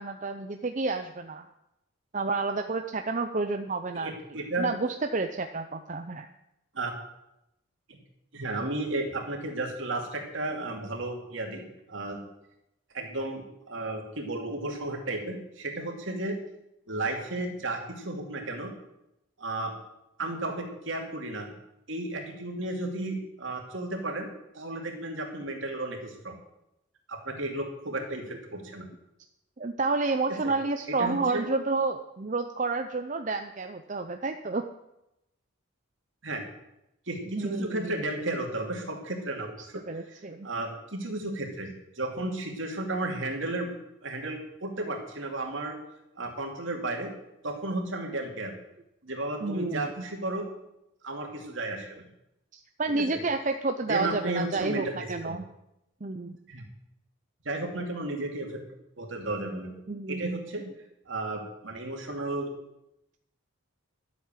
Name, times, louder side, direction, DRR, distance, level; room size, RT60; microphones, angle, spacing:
voice 1, 0.0-1.5 2.1-4.2 4.6-6.3 29.6-34.6 37.3-37.9 39.9-40.5 49.4-50.1 52.5-55.5 56.0-56.4 59.9-60.4, right 3 dB, 35° right, 6 dB, 0.6 m, -30 dB
voice 2, 3.9-4.7 6.7-6.9 7.9-8.0 8.3-12.2 12.9-16.4 16.9-18.7 19.4-19.7 20.2-21.5 21.9-24.3 24.5-26.4 27.1-28.9 30.3-30.5 30.9-31.5 36.2-36.4 37.1-39.8 40.1-40.2 40.4-43.7 44.0-45.8 46.2-47.1 47.4-48.6 49.0-50.5 51.0-52.0 52.9-53.2 53.9-55.4 56.5-56.6 57.4-58.6 59.0-59.7 60.1-60.6 61.1-62.5, right 2 dB, 65° right, 2 dB, 2.6 m, -33 dB
12.0 x 8.4 x 7.5 m, 0.85 s
head